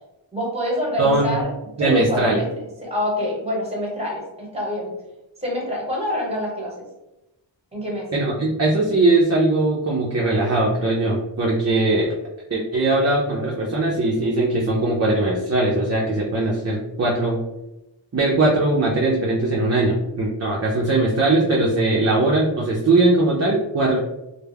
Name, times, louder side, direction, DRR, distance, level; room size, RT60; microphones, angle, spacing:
voice 1, 0.3-1.5 1.8-2.4 2.8-4.9 5.4-6.9 7.7-8.1, left 1 dB, 15° right, -3 dB, 1.1 m, -26 dB
voice 2, 1.0-1.4 1.8-2.4 8.1-12.1 12.5-17.4 18.1-24.0, right 2 dB, 35° right, -3 dB, 0.5 m, -20 dB
2.2 x 2.1 x 3.3 m, 0.94 s
wide cardioid pair, 75°, 47 cm